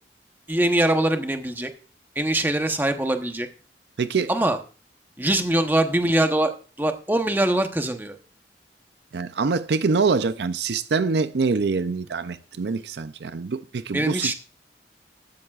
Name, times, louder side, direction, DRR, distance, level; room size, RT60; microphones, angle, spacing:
voice 1, 0.5-1.7 2.2-3.5 4.3-4.6 5.2-8.2 13.9-14.3, right 1 dB, 10° right, 0.9 m, -23 dB
voice 2, 4.0-4.3 9.1-14.3, right 4 dB, 65° right, 0.5 m, -25 dB
15.0 x 12.5 x 2.4 m
head